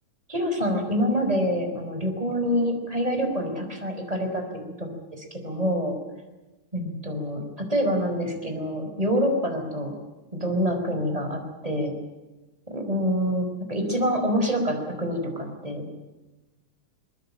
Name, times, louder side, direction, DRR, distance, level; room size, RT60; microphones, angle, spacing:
voice 1, 0.3-4.4 4.8-5.9 6.7-9.9 10.3-11.9 12.7-15.9, equal, 10° right, 4 dB, 4.9 m, -26 dB
22.5 x 22.5 x 8.8 m, 1.1 s
omnidirectional pair, 4.0 m